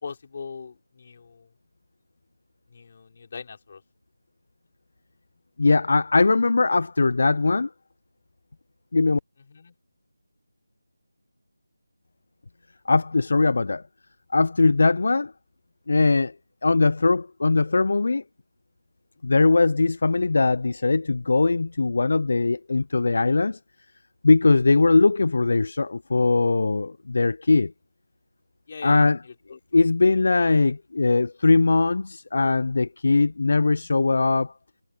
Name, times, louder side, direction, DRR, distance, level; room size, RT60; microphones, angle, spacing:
voice 1, 0.0-1.5 2.7-3.8 9.5-9.7 28.7-29.8, left 5 dB, 35° left, 4.8 m, -41 dB
voice 2, 5.6-7.7 8.9-9.2 12.9-13.8 14.3-15.3 15.9-16.3 16.6-18.2 19.2-23.6 24.2-27.7 28.8-29.2 29.7-34.5, left 3 dB, 50° left, 0.6 m, -20 dB
figure-of-eight pair, 165°, 0 cm